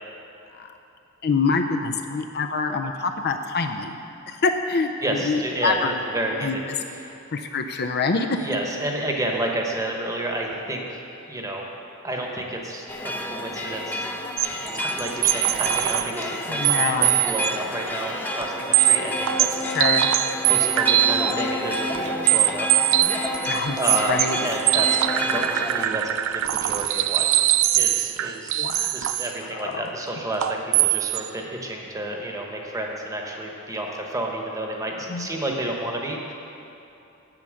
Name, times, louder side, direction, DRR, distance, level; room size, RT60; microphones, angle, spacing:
voice 1, 1.2-4.0 4.3-6.0 6.3-6.6 7.3-8.4 16.5-17.2 19.7-20.1 23.4-23.8 24.1-24.4 28.6-29.1 29.6-29.9 35.1-35.3, left 4 dB, 50° left, 5 dB, 0.5 m, -25 dB
voice 2, 5.0-6.6 6.9-7.1 8.4-11.0 11.3-11.7 12.0-14.1 14.5-19.6 20.4-22.7 23.8-26.0 26.3-27.3 27.7-36.3, right 1 dB, 15° right, 0 dB, 1.1 m, -30 dB
sound 1, 12.9-25.8, left 1 dB, 10° left, 0.6 m, -29 dB
sound 2, 14.4-16.2 16.6-17.6 17.9-18.0 18.4-18.5 18.7-21.4 21.7-29.3 30.4-31.3, right 14 dB, 65° right, 0.3 m, -22 dB
8.9 x 8.1 x 6.4 m, 2.9 s
head